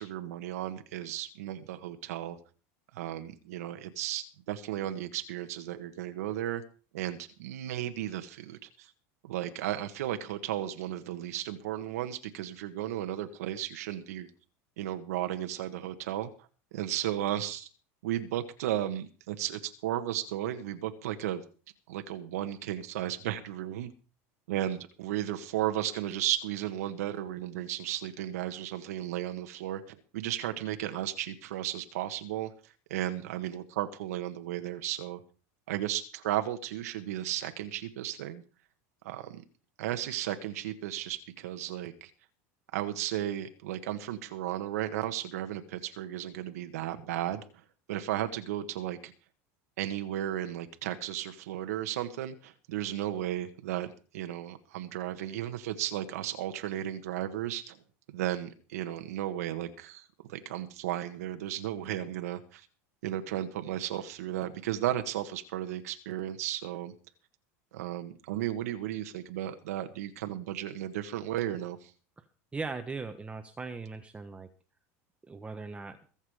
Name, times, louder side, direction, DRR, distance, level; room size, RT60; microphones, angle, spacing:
voice 1, 0.0-2.4 2.9-6.6 6.9-8.9 9.2-14.3 14.8-16.3 16.7-17.7 18.0-21.4 21.9-23.9 24.5-35.2 35.7-38.4 39.0-39.4 39.8-42.1 42.7-47.4 47.9-49.1 49.8-53.9 54.1-57.8 58.1-62.7 63.0-66.9 67.7-71.9, right 12 dB, 85° right, 7 dB, 1.6 m, -34 dB
voice 2, 72.5-74.5 75.3-76.0, right 4 dB, 15° right, 7 dB, 1.2 m, -39 dB
22.0 x 7.5 x 5.0 m, 0.38 s
supercardioid pair, 115°, 8 cm